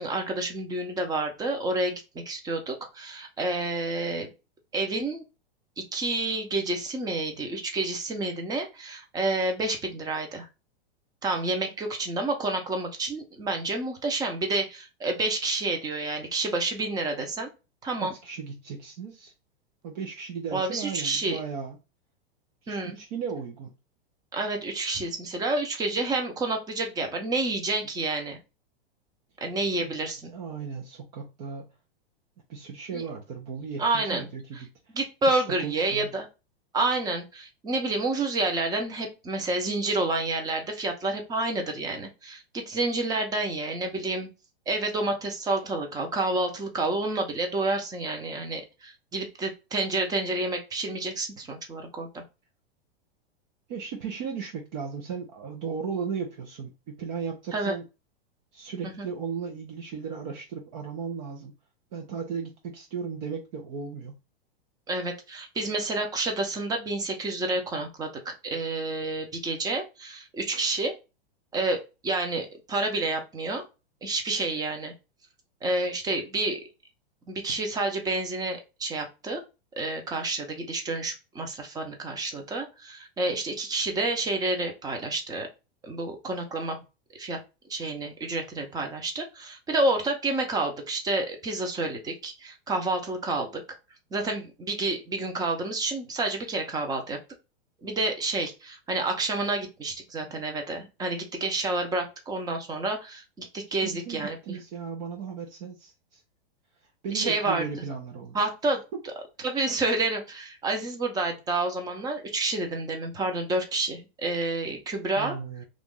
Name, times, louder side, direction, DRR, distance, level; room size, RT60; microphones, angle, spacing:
voice 1, 0.0-4.3 4.7-5.2 5.8-10.5 11.2-17.5 17.8-18.1 20.5-21.4 22.7-23.0 24.3-28.4 29.4-30.3 32.9-33.0 33.8-34.3 34.9-36.3 36.7-44.3 44.7-52.2 57.5-57.7 58.8-59.1 64.9-70.9 71.5-73.6 74.0-74.9 75.6-76.6 77.3-79.4 79.8-85.5 85.8-86.8 87.2-87.4 87.7-93.6 94.1-97.2 97.8-104.6 107.1-107.7 108.3-108.8 109.4-115.3, right 2 dB, 10° right, 0.7 m, -29 dB
voice 2, 18.0-19.3 19.8-21.8 22.6-23.7 29.8-30.0 30.3-31.7 32.5-34.9 35.3-36.1 53.7-57.8 58.5-61.5 61.9-64.2 103.8-106.2 107.0-108.3 115.2-115.7, right 6 dB, 45° right, 0.7 m, -36 dB
3.0 x 2.5 x 3.6 m
hypercardioid pair, 140°, 31 cm